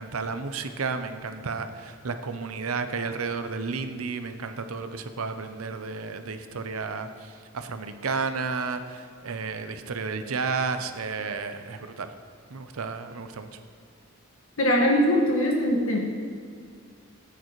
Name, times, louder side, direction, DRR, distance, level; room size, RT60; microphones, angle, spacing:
voice 1, 0.0-12.1 12.5-13.6, right 4 dB, 90° right, 9 dB, 0.7 m, -32 dB
voice 2, 14.6-16.0, equal, 75° left, 0 dB, 1.7 m, -21 dB
14.5 x 8.9 x 3.2 m, 2.1 s
head